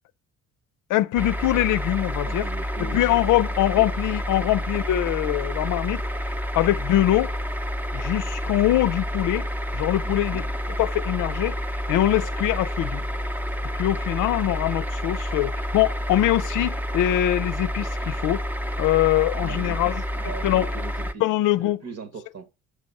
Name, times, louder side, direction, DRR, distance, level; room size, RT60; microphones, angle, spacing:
voice 1, 0.9-2.5 2.8-7.3 7.9-9.5 9.7-10.5 10.8-11.6 11.9-13.0 13.7-18.5 18.8-20.0 20.4-20.7 21.2-21.8, left 14 dB, 85° left, 0.5 m, -23 dB
sound 1, 1.2-21.1, equal, 5° right, 0.6 m, -29 dB
voice 2, 2.2-3.2 3.7-3.9 4.3-4.4 10.0-10.4 19.3-21.2 21.6-22.5, right 4 dB, 55° right, 1.3 m, -39 dB
6.4 x 5.0 x 4.1 m
cardioid pair, 90°, 30 cm